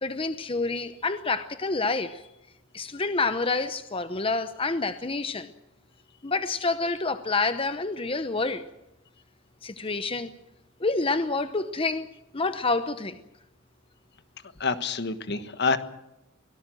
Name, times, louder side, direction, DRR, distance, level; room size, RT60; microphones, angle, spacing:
voice 1, 0.0-2.2 2.7-5.5 6.2-8.6 9.6-10.3 10.8-12.1 12.3-13.2, left 3 dB, 25° left, 10 dB, 0.8 m, -28 dB
voice 2, 14.6-15.8, left 4 dB, 55° left, 11 dB, 1.4 m, -27 dB
24.0 x 18.0 x 7.7 m, 0.90 s
head